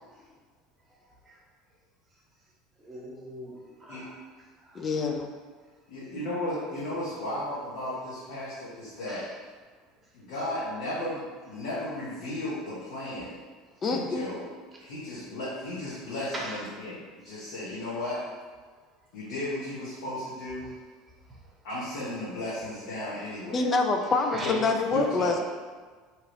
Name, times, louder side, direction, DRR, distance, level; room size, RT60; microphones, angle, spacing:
voice 1, 2.8-4.1 4.6-4.9 9.1-9.2 16.3-16.6 17.3-17.5 21.3-21.4 24.3-24.5, right 1 dB, 25° right, -3 dB, 1.0 m, -40 dB
voice 2, 4.7-5.3 13.8-14.3 23.5-25.4, left 3 dB, 35° left, 4 dB, 0.4 m, -26 dB
voice 3, 5.9-9.2 10.1-13.4 13.8-14.4 14.8-18.2 19.1-20.7 21.6-23.6 24.4-24.6 24.9-25.4, left 1 dB, 70° left, -9 dB, 0.9 m, -35 dB
2.9 x 2.3 x 3.2 m, 1.5 s
hypercardioid pair, 80°, 0 cm